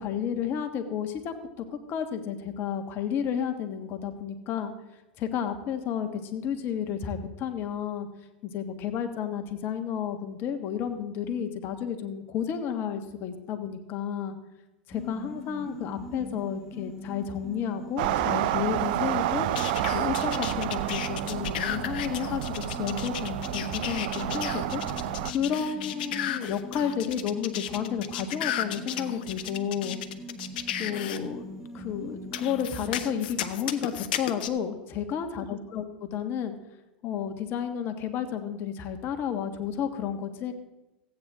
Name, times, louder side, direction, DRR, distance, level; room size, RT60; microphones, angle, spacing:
voice 1, 0.0-4.7 5.2-8.1 8.4-14.4 14.9-19.5 19.9-30.0 30.8-31.5 31.7-36.6 37.0-40.5, left 8 dB, 45° left, 7 dB, 1.4 m, -32 dB
sound 1, 14.9-33.2, left 1 dB, 5° right, 1.7 m, -41 dB
sound 2, 18.0-25.3, right 13 dB, 65° right, 0.4 m, -30 dB
sound 3, 19.6-31.2 32.3-34.5, left 11 dB, 70° left, 0.8 m, -34 dB
15.0 x 9.0 x 3.6 m, 1.0 s
hypercardioid pair, 100°, 5 cm